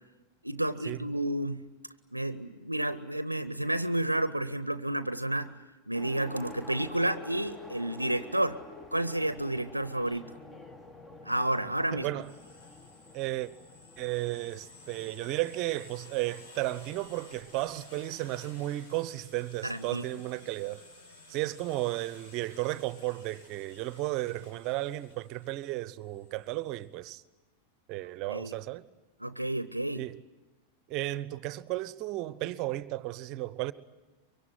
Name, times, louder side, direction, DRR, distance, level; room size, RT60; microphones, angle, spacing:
voice 1, 0.4-1.6 2.1-5.5 5.9-8.6 8.9-10.3 11.2-12.1 19.6-20.0 28.3-28.6 29.2-30.0, right 1 dB, 85° right, 0.8 m, -31 dB
sound 1, 5.9-18.2, left 2 dB, 15° left, 1.7 m, -49 dB
voice 2, 11.9-12.3 13.1-13.5 14.0-20.8 21.3-27.2 27.9-28.9 29.9-30.2 30.9-33.7, right 17 dB, 40° right, 1.0 m, -34 dB
sound 2, 12.2-26.9, left 2 dB, 60° left, 6.0 m, -54 dB
24.5 x 23.5 x 9.5 m
figure-of-eight pair, 90°, 0 cm